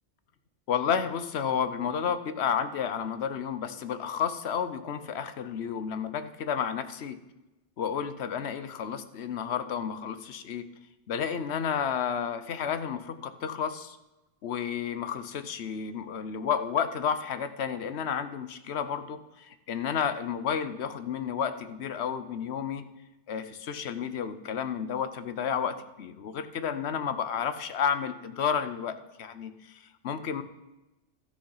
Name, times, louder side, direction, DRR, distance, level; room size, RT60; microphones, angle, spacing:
voice 1, 0.7-7.2 7.8-10.6 11.1-14.0 14.4-22.9 23.3-30.4, left 7 dB, 70° left, 11 dB, 1.0 m, -31 dB
13.0 x 6.6 x 5.6 m, 1.0 s
omnidirectional pair, 1.2 m